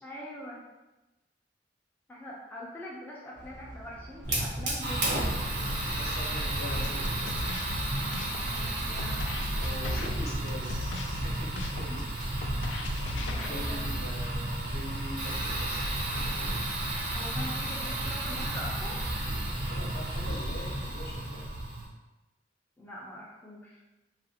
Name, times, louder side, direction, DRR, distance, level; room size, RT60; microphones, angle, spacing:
voice 1, 0.0-0.6 2.1-5.6 8.5-9.2 11.9-12.0 13.2-13.8 17.1-19.0 22.8-23.8, left 1 dB, 10° left, -5 dB, 0.4 m, -43 dB
sound 1, 3.3-11.4, right 1 dB, 50° right, 0.5 m, -47 dB
Fire, 4.2-21.9, right 1 dB, 80° right, 0.8 m, -32 dB
voice 2, 5.8-7.5 9.6-10.8 11.1-12.0 12.5-15.9 19.6-21.4, equal, 60° left, -3 dB, 0.7 m, -43 dB
sound 2, 6.6-13.5, left 2 dB, 85° left, 0.3 m, -37 dB
2.8 x 2.4 x 2.7 m, 1.1 s
head